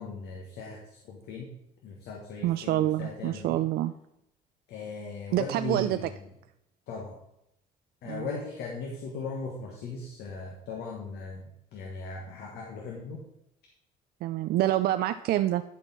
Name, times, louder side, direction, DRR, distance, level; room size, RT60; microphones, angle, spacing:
voice 1, 0.0-1.5 1.8-3.6 4.7-6.1 6.9-7.1 8.0-13.2, left 4 dB, 75° left, -1 dB, 1.5 m, -38 dB
voice 2, 2.4-3.9 5.3-6.0 8.1-8.3 14.2-15.6, right 14 dB, 70° right, 10 dB, 0.4 m, -27 dB
11.5 x 4.6 x 4.3 m, 0.82 s
cardioid pair, 110°, 17 cm